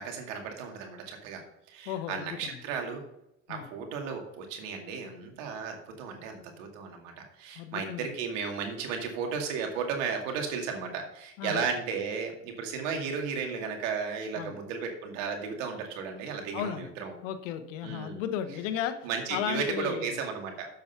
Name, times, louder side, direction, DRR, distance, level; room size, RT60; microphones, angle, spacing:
voice 1, 0.0-1.4 1.7-3.0 3.5-17.2 17.8-18.2 19.0-20.7, right 5 dB, 90° right, 3 dB, 2.4 m, -34 dB
voice 2, 1.9-2.5 3.5-3.6 7.6-8.1 11.4-11.7 14.4-14.5 16.5-16.9 17.2-20.2, left 10 dB, 90° left, 10 dB, 1.1 m, -35 dB
7.7 x 7.1 x 5.8 m, 0.82 s
supercardioid pair, 85°, 37 cm